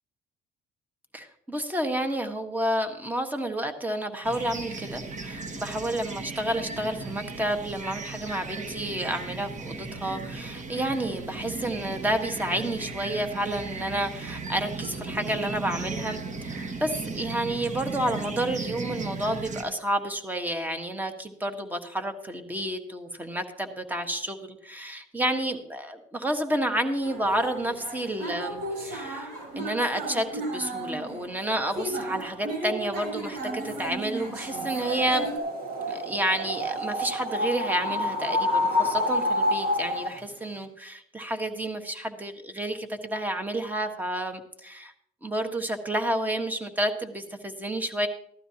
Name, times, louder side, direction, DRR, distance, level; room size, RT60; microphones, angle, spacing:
voice 1, 1.1-16.2 16.4-29.3 29.5-35.3 35.9-44.9 45.2-48.1, right 1 dB, 10° right, 6 dB, 1.4 m, -30 dB
sound 1, 4.2-19.6, right 3 dB, 45° right, 1.5 m, -36 dB
sound 2, 27.0-35.4, right 1 dB, 90° right, 4.2 m, -35 dB
sound 3, 34.4-40.2, left 1 dB, 60° right, 1.7 m, -28 dB
15.5 x 12.0 x 2.8 m, 0.68 s
cardioid pair, 110°, 17 cm